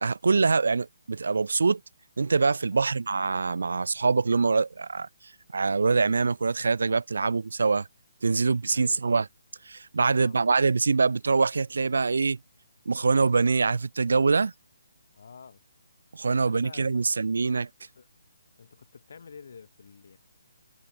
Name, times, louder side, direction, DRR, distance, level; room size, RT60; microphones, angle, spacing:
voice 1, 0.0-1.8 2.2-5.1 5.5-7.9 8.2-9.2 9.7-12.4 12.9-14.5 16.1-17.7, right 4 dB, 80° right, 0.4 m, -24 dB
voice 2, 8.3-9.1 10.0-10.4 15.1-15.6 16.3-17.1 17.8-18.1 18.6-20.2, left 6 dB, 60° left, 8.0 m, -50 dB
hypercardioid pair, 165°, 0 cm